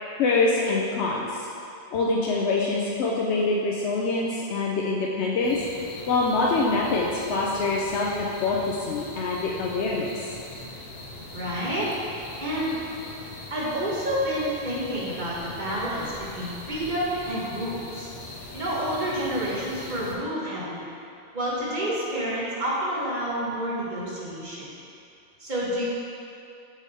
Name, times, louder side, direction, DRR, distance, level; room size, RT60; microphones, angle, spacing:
voice 1, 0.2-1.4 1.9-5.6 6.1-10.1, left 3 dB, 90° left, -3 dB, 0.9 m, -25 dB
sound 1, 5.4-20.1, left 2 dB, 60° left, 1.0 m, -41 dB
voice 2, 11.3-11.9 12.4-12.8 13.5-18.1 18.5-20.8 21.3-24.7 25.4-25.8, equal, 45° right, -7 dB, 1.4 m, -29 dB
5.1 x 4.9 x 4.1 m, 2.6 s
omnidirectional pair, 1.1 m